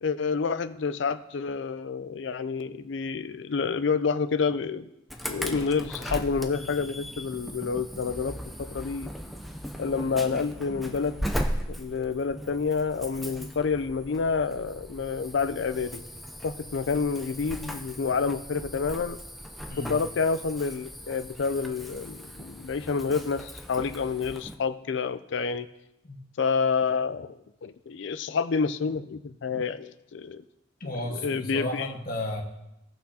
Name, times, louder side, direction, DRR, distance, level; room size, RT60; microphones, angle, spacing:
voice 1, 0.0-4.9 5.2-9.1 9.8-11.3 11.7-16.0 16.4-19.2 19.8-25.7 26.4-30.4 31.2-31.9, left 5 dB, 70° left, 13 dB, 0.4 m, -28 dB
Insect / Alarm, 5.1-24.5, equal, ahead, 0.5 m, -38 dB
voice 2, 30.8-32.4, left 1 dB, 50° left, 0 dB, 1.5 m, -33 dB
17.0 x 6.0 x 2.8 m, 0.85 s
head